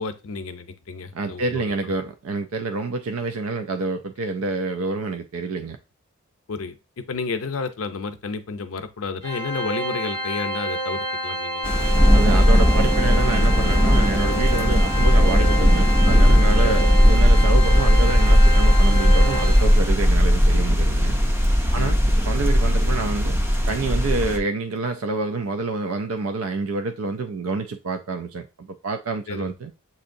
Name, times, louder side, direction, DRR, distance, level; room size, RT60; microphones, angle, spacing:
voice 1, 0.0-1.6 6.5-12.2 16.6-16.9 21.7-21.9 29.3-29.5, left 4 dB, 75° left, 0.6 m, -31 dB
voice 2, 1.1-5.8 12.1-21.2 21.7-23.4 23.7-29.7, right 3 dB, 85° right, 0.5 m, -27 dB
Organ, 9.2-20.0, equal, 40° right, 1.7 m, -29 dB
sound 1, 11.6-24.4, equal, 10° right, 0.5 m, -17 dB
7.5 x 2.7 x 2.6 m
head